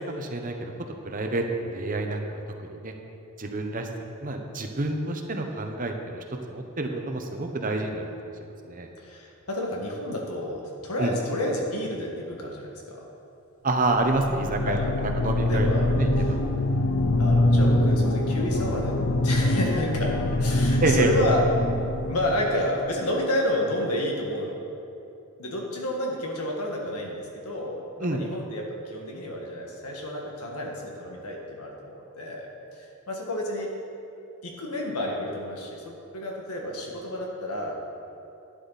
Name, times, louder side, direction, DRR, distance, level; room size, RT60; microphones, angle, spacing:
voice 1, 0.1-0.7 1.0-2.4 2.8-2.9 3.4-3.9 4.2-6.2 6.5-8.3 8.6-8.9 11.0-11.1 13.6-15.7 15.9-16.4 20.8-21.1 28.0-28.2, right 2 dB, 40° right, 4 dB, 0.9 m, -28 dB
voice 2, 9.0-13.1 14.7-14.9 15.5-15.9 16.2-16.3 17.2-20.1 20.4-21.4 22.1-24.6 25.4-33.7 34.4-37.9, left 1 dB, 85° left, 0 dB, 1.8 m, -30 dB
sound 1, 13.8-22.8, left 1 dB, 65° left, 0.7 m, -24 dB
11.5 x 9.8 x 4.1 m, 2.8 s
head